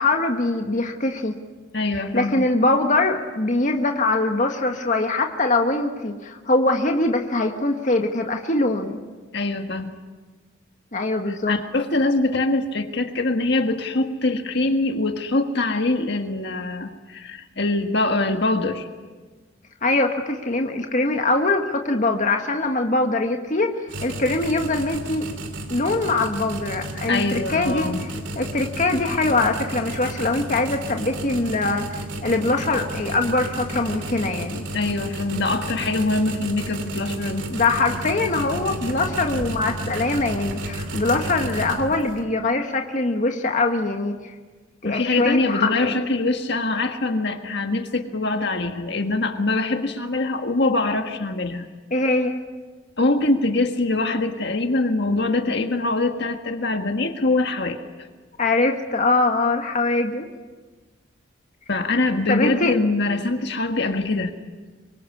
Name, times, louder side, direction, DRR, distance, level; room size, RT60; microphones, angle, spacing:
voice 1, 0.0-1.4 2.1-9.0 10.9-11.5 19.8-23.7 24.0-25.3 25.7-27.9 28.3-34.6 37.5-44.2 44.8-46.0 51.9-52.4 58.4-60.3 62.3-62.7, left 2 dB, 40° left, 3 dB, 1.7 m, -22 dB
voice 2, 1.7-2.5 9.3-10.0 11.3-18.9 27.1-28.0 34.7-37.5 44.8-51.7 53.0-58.1 61.7-64.3, left 2 dB, 60° left, 5 dB, 1.7 m, -23 dB
sound 1, 23.9-42.2, right 1 dB, 70° right, 3.0 m, -32 dB
25.0 x 23.0 x 8.6 m, 1.4 s
head